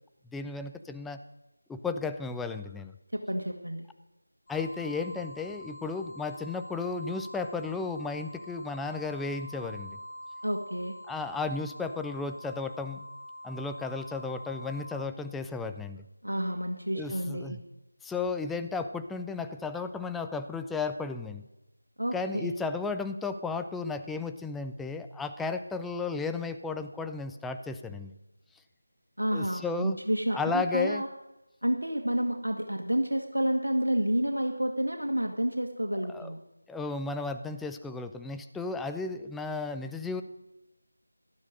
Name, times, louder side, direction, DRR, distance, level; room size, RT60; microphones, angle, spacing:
voice 1, 0.3-1.2 1.7-2.9 4.5-10.0 11.1-13.1 13.4-16.0 16.9-17.6 18.0-21.4 22.1-28.1 29.3-30.0 30.3-31.0 36.1-36.3 36.7-40.2, left 4 dB, 5° left, 7 dB, 0.4 m, -34 dB
voice 2, 3.1-3.9 10.4-10.9 16.2-17.6 22.0-22.6 29.2-31.1 31.6-36.4, equal, 80° right, 3 dB, 2.0 m, -29 dB
sound 1, 4.5-15.1, left 1 dB, 40° left, 3.2 m, -45 dB
18.0 x 12.5 x 5.2 m, 0.98 s
figure-of-eight pair, 165°, 0 cm